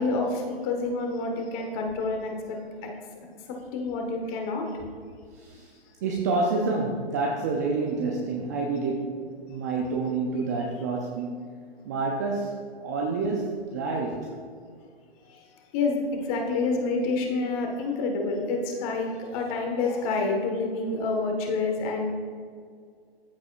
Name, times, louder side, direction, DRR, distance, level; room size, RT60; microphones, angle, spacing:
voice 1, 0.0-2.9 3.5-4.6 15.3-15.4 15.7-22.1, left 3 dB, 35° left, 2 dB, 1.3 m, -28 dB
voice 2, 5.3-5.8 6.0-11.5 11.9-12.5 12.8-14.3, right 3 dB, 20° right, 0 dB, 0.3 m, -28 dB
13.5 x 4.7 x 2.4 m, 2.1 s
hypercardioid pair, 130°, 32 cm